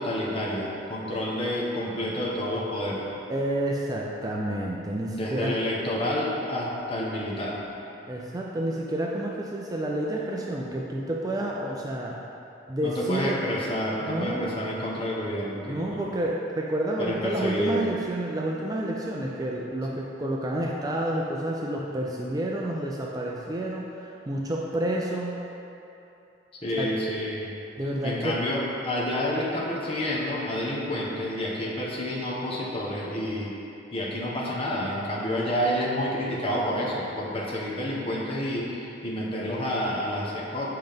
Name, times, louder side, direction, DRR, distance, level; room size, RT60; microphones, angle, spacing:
voice 1, 0.0-3.1 5.1-7.6 12.8-16.1 17.0-17.9 26.6-27.5 28.0-33.6 33.9-40.7, left 1 dB, 30° left, -5 dB, 1.0 m, -29 dB
voice 2, 3.3-5.6 8.1-12.2 12.7-13.4 14.0-14.5 15.7-25.4 26.7-26.9 27.8-28.4, right 1 dB, 20° right, -2 dB, 0.4 m, -29 dB
7.8 x 5.2 x 3.5 m, 2.8 s
head